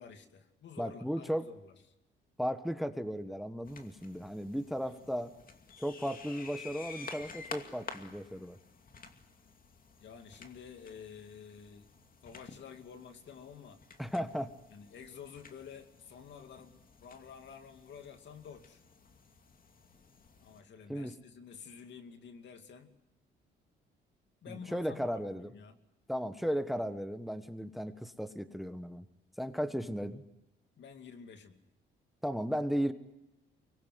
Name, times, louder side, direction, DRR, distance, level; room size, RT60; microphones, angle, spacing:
voice 1, 0.0-1.7 4.8-5.1 10.0-11.9 12.2-13.8 14.7-18.8 20.4-22.9 24.4-25.8 30.8-31.6, left 7 dB, 65° left, 7 dB, 2.7 m, -50 dB
voice 2, 0.8-1.5 2.4-5.3 5.8-8.6 14.0-14.5 20.9-21.1 24.5-25.5 26.1-29.1 29.4-30.2 32.2-32.9, equal, ahead, 11 dB, 1.4 m, -35 dB
sound 1, 3.6-20.6, left 5 dB, 45° left, 2.5 m, -52 dB
24.5 x 21.5 x 9.5 m, 0.93 s
cardioid pair, 90°, 20 cm